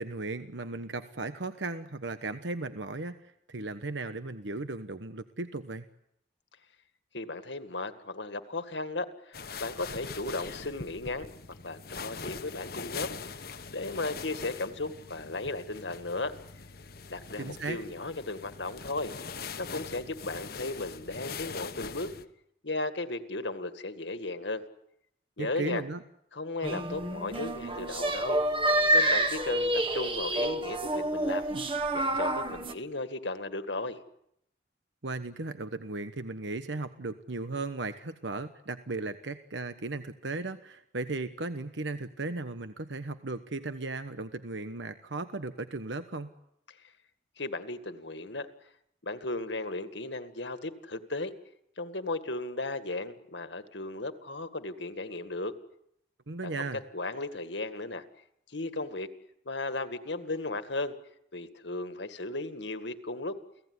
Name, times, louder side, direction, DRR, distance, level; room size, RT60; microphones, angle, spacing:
voice 1, 0.0-5.8 17.4-17.8 25.4-26.0 31.5-31.7 35.0-46.3 56.3-56.8, right 3 dB, 75° right, 10 dB, 1.2 m, -36 dB
voice 2, 7.1-11.3 11.6-13.2 13.7-16.3 17.1-19.1 19.6-22.1 22.6-24.6 25.4-25.8 26.3-28.4 28.9-31.5 31.9-34.0 46.7-46.8 47.4-48.5 49.0-51.3 51.8-55.6 56.4-56.6 56.9-58.0 58.5-59.1 59.5-60.9 61.3-63.4, left 2 dB, 70° left, 10 dB, 2.0 m, -35 dB
sound 1, 9.3-22.2, left 5 dB, 50° left, 1.2 m, -42 dB
sound 2, 26.6-32.7, right 1 dB, 25° right, 1.5 m, -28 dB
30.0 x 18.0 x 9.7 m, 0.76 s
head